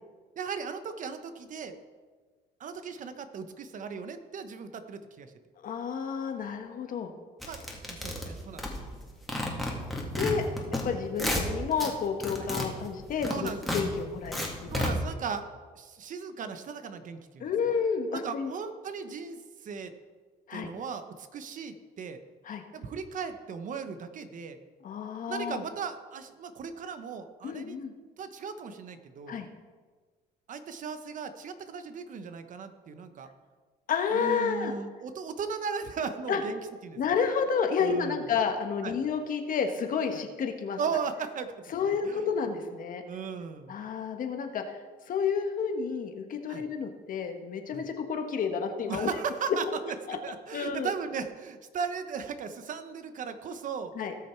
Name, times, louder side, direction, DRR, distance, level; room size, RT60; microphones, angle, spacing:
voice 1, 0.4-1.7 2.6-5.3 7.5-7.6 7.9-8.8 12.4-12.5 13.3-13.6 14.7-15.4 15.8-17.5 18.1-19.9 20.5-22.2 22.7-24.6 25.3-27.8 28.2-29.4 30.5-33.3 34.1-37.0 37.8-38.2 38.8-38.9 40.1-40.2 40.8-41.5 42.0-42.3 43.1-43.7 46.5-46.7 47.7-47.8 48.9-49.9 50.2-53.9, right 6 dB, 50° right, 9 dB, 0.9 m, -37 dB
voice 2, 5.6-7.1 10.2-10.4 10.7-14.9 17.4-18.5 20.5-20.7 22.4-22.6 24.8-25.6 27.4-27.9 29.3-29.5 33.9-34.7 36.3-36.4 37.0-40.8 41.7-43.0 43.7-44.8 45.1-49.1 50.1-50.2 50.5-50.9 53.9-54.1, left 6 dB, 55° left, 5 dB, 1.4 m, -30 dB
sound 1, 7.4-9.0 9.3-10.8 11.1-11.9 12.2-14.9, left 1 dB, ahead, 2.2 m, -32 dB
18.0 x 6.4 x 4.6 m, 1.5 s
cardioid pair, 110°, 17 cm